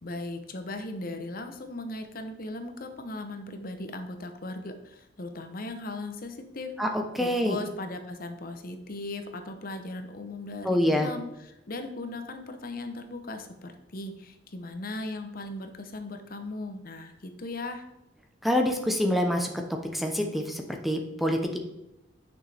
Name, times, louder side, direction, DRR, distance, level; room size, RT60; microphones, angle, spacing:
voice 1, 0.0-6.7 7.2-17.8, left 2 dB, 50° left, 6 dB, 0.9 m, -38 dB
voice 2, 6.8-7.6 10.6-11.1 18.4-19.5 19.9-21.6, left 1 dB, ahead, 3 dB, 0.8 m, -26 dB
9.4 x 6.2 x 3.4 m, 0.90 s
head